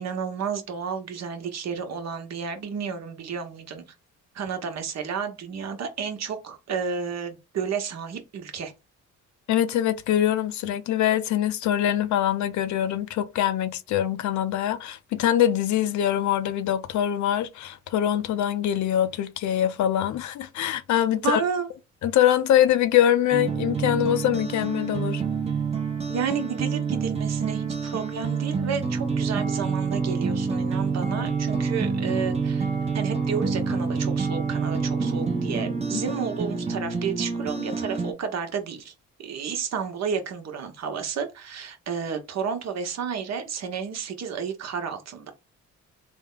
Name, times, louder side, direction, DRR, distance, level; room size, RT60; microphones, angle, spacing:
voice 1, 0.0-3.8 4.3-8.7 21.2-21.7 26.1-38.9 39.2-45.3, right 6 dB, 60° right, 1.0 m, -31 dB
voice 2, 9.5-21.4 22.0-25.2 35.9-36.0, left 11 dB, 70° left, 0.6 m, -23 dB
sound 1, 23.3-38.1, right 5 dB, 20° right, 0.7 m, -27 dB
3.4 x 2.2 x 3.7 m
cardioid pair, 90°, 30 cm